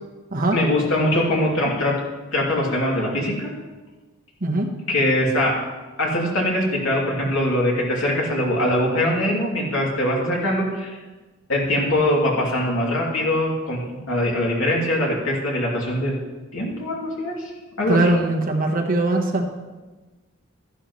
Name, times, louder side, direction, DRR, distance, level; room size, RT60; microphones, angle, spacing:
voice 1, 0.5-1.9 2.3-3.5 4.9-5.5 6.0-11.0 11.5-13.8 14.1-16.2 16.5-17.5 17.8-18.0, left 1 dB, 70° left, -3 dB, 2.9 m, -22 dB
voice 2, 4.4-4.7 17.9-19.4, right 2 dB, 45° right, 2 dB, 1.3 m, -21 dB
13.5 x 11.0 x 3.2 m, 1.2 s
head